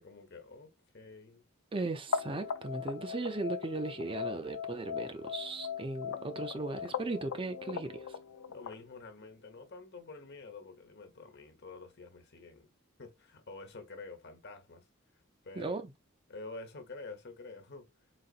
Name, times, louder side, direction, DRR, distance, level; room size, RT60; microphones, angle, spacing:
voice 1, 0.0-1.4 8.5-12.7 13.0-14.9 15.4-15.8 16.3-17.9, left 3 dB, 55° left, 1.2 m, -48 dB
voice 2, 1.7-8.1 15.6-15.9, right 3 dB, 25° right, 0.5 m, -37 dB
sound 1, 2.1-8.8, left 7 dB, 80° left, 0.4 m, -39 dB
4.0 x 4.0 x 2.4 m
head